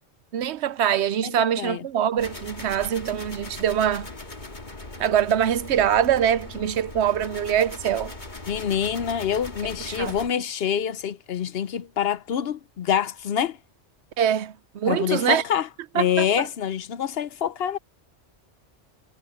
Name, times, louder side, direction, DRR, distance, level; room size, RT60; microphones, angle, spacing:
voice 1, 0.3-4.1 5.0-8.1 9.9-10.1 14.2-15.4 15.9-16.5, right 9 dB, 70° right, 0.9 m, -23 dB
voice 2, 1.2-1.8 8.5-13.6 14.9-15.7 15.9-17.8, left 8 dB, 60° left, 0.8 m, -26 dB
sound 1, 2.2-10.3, left 2 dB, 40° left, 2.4 m, -39 dB
omnidirectional pair, 1.2 m